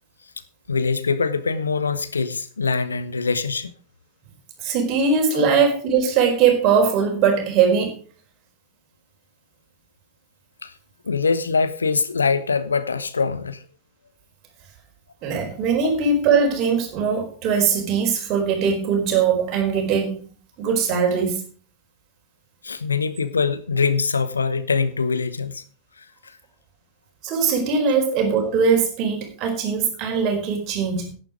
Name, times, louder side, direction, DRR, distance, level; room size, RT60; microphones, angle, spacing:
voice 1, 0.7-3.7 5.3-5.4 10.6-10.7 11.0-13.6 22.6-25.6 26.0-26.4, left 5 dB, 75° left, 13 dB, 1.0 m, -23 dB
voice 2, 4.6-8.0 15.2-20.2 20.6-21.4 27.2-31.1, right 6 dB, 40° right, 2 dB, 4.6 m, -20 dB
11.0 x 10.0 x 5.0 m, 0.42 s
figure-of-eight pair, 90°, 0 cm